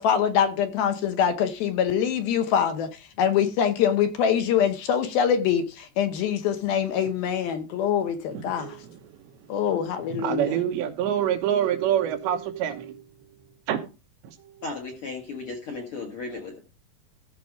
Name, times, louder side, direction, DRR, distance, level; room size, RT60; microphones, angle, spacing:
voice 1, 0.0-2.9 3.2-8.8 9.5-10.5, left 8 dB, 75° left, 2.4 m, -24 dB
voice 2, 8.3-9.1 10.1-13.0 13.7-13.9 14.2-14.4, right 10 dB, 85° right, 3.5 m, -26 dB
voice 3, 14.6-16.6, left 3 dB, 55° left, 1.6 m, -35 dB
15.0 x 5.3 x 4.9 m
omnidirectional pair, 5.0 m